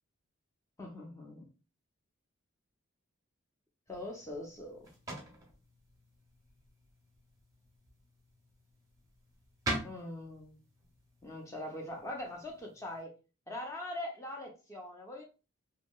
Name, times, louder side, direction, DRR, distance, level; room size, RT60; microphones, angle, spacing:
voice 1, 0.8-1.5 3.9-4.9 9.8-10.6 11.2-13.1 13.5-15.2, left 1 dB, 15° left, 0.5 m, -42 dB
sound 1, 3.9-13.0, right 1 dB, 15° right, 0.7 m, -45 dB
2.8 x 2.7 x 2.2 m
head